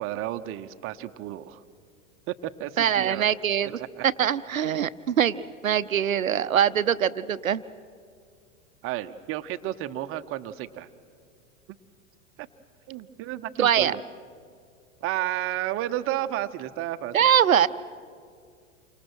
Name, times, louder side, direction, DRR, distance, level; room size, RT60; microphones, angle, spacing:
voice 1, 0.0-1.6 2.3-3.3 3.8-4.0 8.8-10.9 12.4-12.5 12.9-14.0 15.0-17.1, right 14 dB, 35° right, 10 dB, 0.9 m, -32 dB
voice 2, 2.8-7.6 13.6-14.0 17.1-17.7, right 9 dB, 85° right, 15 dB, 0.7 m, -23 dB
28.5 x 25.0 x 6.2 m, 2.2 s
figure-of-eight pair, 95°, 40 cm